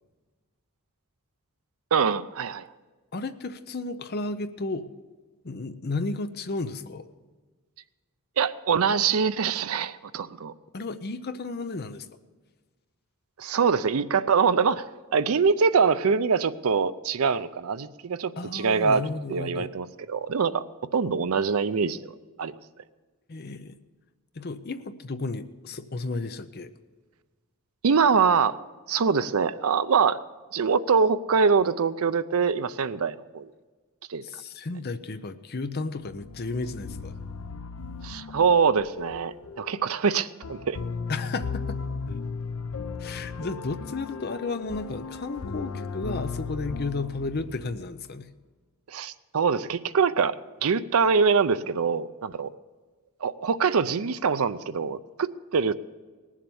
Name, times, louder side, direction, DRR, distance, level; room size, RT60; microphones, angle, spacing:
voice 1, 1.9-2.7 8.4-10.5 13.4-14.9 15.1-20.6 20.9-22.1 22.4-22.5 27.8-28.6 28.9-30.2 30.5-33.5 34.1-34.2 38.0-40.8 48.9-50.4 50.6-52.5 53.2-55.7, right 5 dB, 75° right, 13 dB, 0.5 m, -24 dB
voice 2, 3.1-4.9 5.4-7.1 10.7-12.1 18.4-19.7 23.3-23.8 24.3-26.7 34.2-37.2 41.1-41.8 43.0-48.3, left 3 dB, 45° left, 11 dB, 0.6 m, -33 dB
sound 1, 36.0-48.1, left 4 dB, 85° left, 0.6 m, -36 dB
18.5 x 7.4 x 7.0 m, 1.4 s
head